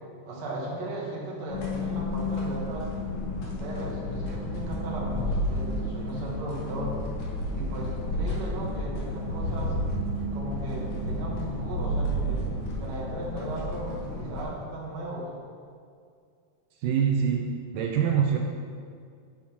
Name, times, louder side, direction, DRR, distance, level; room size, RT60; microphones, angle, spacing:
voice 1, 0.2-2.9 3.4-6.9 7.5-9.7 10.3-12.4 12.8-15.3, right 1 dB, 45° right, -4 dB, 1.5 m, -36 dB
sound 1, 1.5-14.4, equal, 55° left, 2.0 m, -31 dB
voice 2, 16.8-18.4, right 7 dB, 80° right, 2 dB, 2.1 m, -25 dB
7.4 x 7.1 x 4.5 m, 2.3 s
omnidirectional pair, 4.0 m